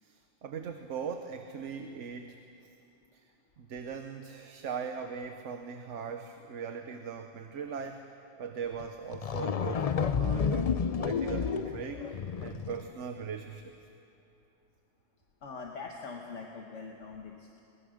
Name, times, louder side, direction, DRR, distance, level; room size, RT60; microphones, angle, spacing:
voice 1, 0.0-2.4 3.1-3.2 3.6-8.1 8.4-10.7 11.0-13.7, right 6 dB, 80° right, 6 dB, 1.2 m, -40 dB
sound 1, 8.8-8.9 9.1-12.9, left 6 dB, 45° left, 0.5 m, -30 dB
voice 2, 15.4-17.6, left 4 dB, 80° left, 1 dB, 1.6 m, -43 dB
23.0 x 20.0 x 6.4 m, 2.9 s
omnidirectional pair, 1.2 m